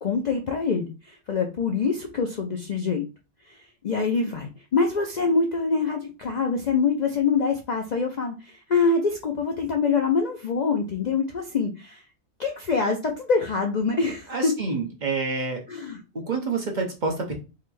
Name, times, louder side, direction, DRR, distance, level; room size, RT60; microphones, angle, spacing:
voice 1, 0.0-3.1 3.5-12.0 12.4-14.5 15.7-16.0, left 4 dB, 85° left, 3 dB, 0.3 m, -25 dB
voice 2, 14.3-15.6 16.2-17.3, right 4 dB, 40° right, 1 dB, 0.8 m, -27 dB
3.9 x 3.1 x 2.6 m, 0.31 s
omnidirectional pair, 1.4 m